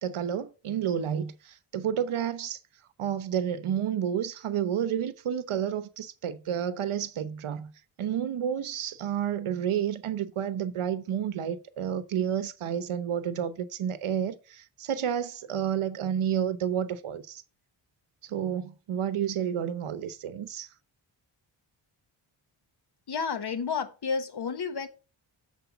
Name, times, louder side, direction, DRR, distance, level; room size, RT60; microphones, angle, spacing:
voice 1, 0.0-2.6 3.0-7.7 8.0-17.4 18.2-20.7, right 9 dB, 85° right, 0.8 m, -30 dB
voice 2, 23.1-24.9, left 5 dB, 55° left, 1.1 m, -31 dB
6.9 x 4.8 x 5.9 m
wide cardioid pair, 155°, 48 cm